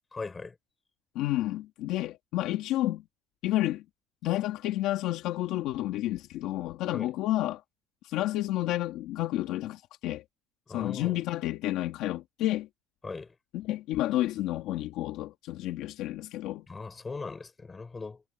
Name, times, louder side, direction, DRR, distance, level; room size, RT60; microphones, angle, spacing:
voice 1, 0.1-0.6 6.9-7.1 10.7-11.2 13.0-13.4 16.7-18.2, left 4 dB, 15° left, 6.2 m, -39 dB
voice 2, 1.1-3.0 3.4-3.8 4.2-7.6 8.0-10.2 10.7-12.7 13.5-16.7, left 15 dB, 55° left, 2.1 m, -30 dB
cardioid pair, 160°, 0 cm